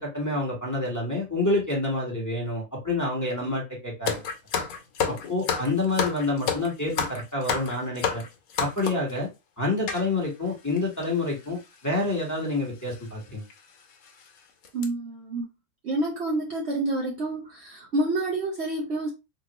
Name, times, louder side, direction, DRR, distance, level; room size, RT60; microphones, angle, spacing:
voice 1, 0.0-4.2 5.3-8.2 8.6-9.3 9.6-13.4, left 2 dB, 15° left, 1.2 m, -28 dB
sound 1, 4.1-9.1 9.9-10.0 10.8-10.9 11.0-11.2 12.2-12.4 12.9-13.0 13.5-13.6 14.0-14.3 14.6-14.8, left 6 dB, 75° left, 1.1 m, -29 dB
voice 2, 14.7-15.5 15.8-19.1, right 2 dB, 55° right, 0.9 m, -28 dB
3.7 x 2.3 x 2.9 m
omnidirectional pair, 1.5 m